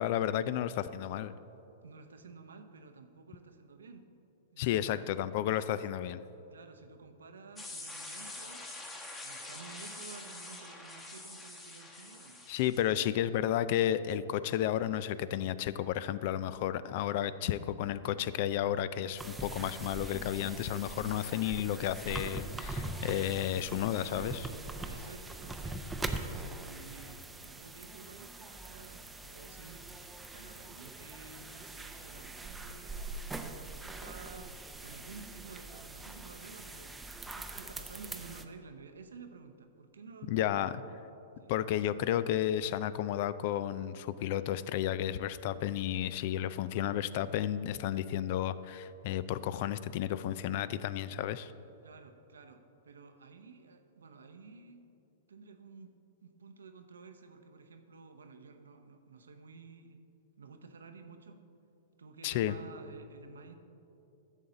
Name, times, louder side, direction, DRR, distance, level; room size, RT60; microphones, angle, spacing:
voice 1, 0.0-1.3 4.6-6.2 12.5-24.4 40.3-40.7 41.5-51.5 62.2-62.6, left 11 dB, 55° left, 16 dB, 0.3 m, -32 dB
voice 2, 1.8-4.1 4.5-5.1 6.5-8.7 9.2-12.4 12.7-13.4 23.9-24.4 24.8-25.8 26.2-33.3 33.7-40.9 41.4-41.5 51.8-54.8 55.3-55.9 56.2-60.0 60.4-61.4 62.0-63.6, right 4 dB, 80° right, 7 dB, 0.7 m, -52 dB
sound 1, 7.6-13.0, left 2 dB, 15° left, 1.3 m, -45 dB
sound 2, 19.2-38.4, right 2 dB, 10° right, 0.6 m, -42 dB
11.0 x 7.2 x 3.9 m, 2.8 s
hypercardioid pair, 110°, 0 cm